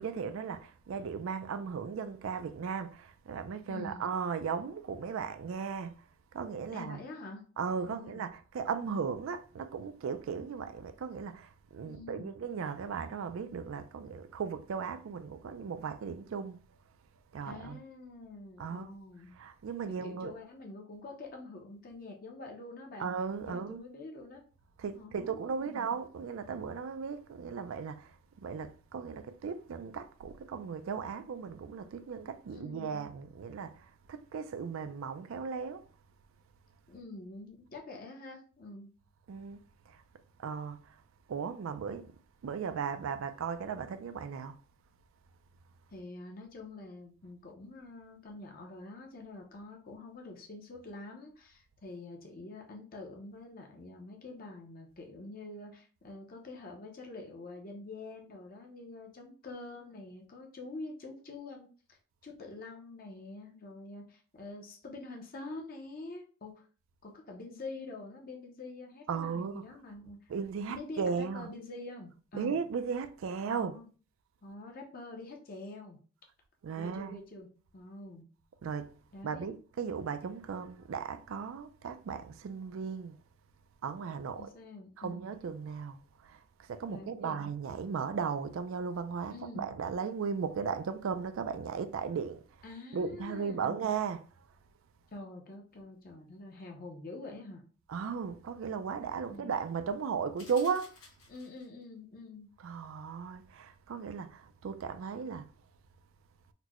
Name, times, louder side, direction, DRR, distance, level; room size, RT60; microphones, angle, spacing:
voice 1, 0.0-6.1 6.3-7.0 7.6-16.6 17.3-17.8 18.6-18.9 19.3-20.3 23.0-23.8 24.8-28.2 28.4-35.9 39.3-39.6 39.9-40.0 40.4-41.0 41.3-42.2 42.4-44.6 69.1-69.7 70.3-71.5 72.3-73.8 76.6-77.2 78.6-79.0 79.2-83.2 83.8-84.5 85.0-94.5 97.9-100.9 102.6-105.5, right 6 dB, 70° right, 0.3 m, -36 dB
voice 2, 3.7-4.0 6.7-7.4 7.9-8.3 11.8-12.4 17.4-19.3 19.9-23.1 23.4-24.4 24.9-25.9 32.5-33.0 36.9-38.9 45.9-66.7 67.0-70.3 70.7-72.6 73.5-73.9 74.4-76.0 76.8-78.2 79.1-79.6 84.3-85.3 86.9-87.4 89.3-89.7 92.6-93.8 95.1-97.6 99.2-99.5 101.3-102.5, left 2 dB, 40° left, 0.6 m, -46 dB
sound 1, 100.4-101.8, left 4 dB, 80° left, 1.1 m, -55 dB
4.2 x 2.1 x 2.9 m
head